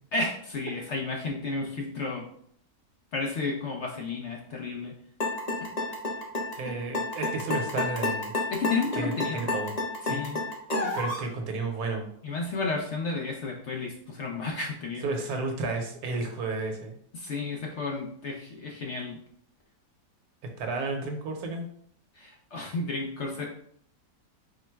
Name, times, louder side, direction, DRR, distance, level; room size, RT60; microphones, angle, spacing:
voice 1, 0.1-2.2 3.1-4.9 8.5-9.4 10.1-10.4 12.2-15.1 17.1-19.2 22.2-23.5, left 3 dB, 60° left, -1 dB, 0.7 m, -32 dB
sound 1, 5.2-11.3, left 2 dB, 80° left, 0.3 m, -30 dB
voice 2, 6.5-8.3 8.9-9.7 10.0-10.2 10.9-12.1 15.0-17.0 20.6-21.7, right 3 dB, 65° right, 3 dB, 1.2 m, -32 dB
4.4 x 2.1 x 4.5 m, 0.64 s
omnidirectional pair, 1.8 m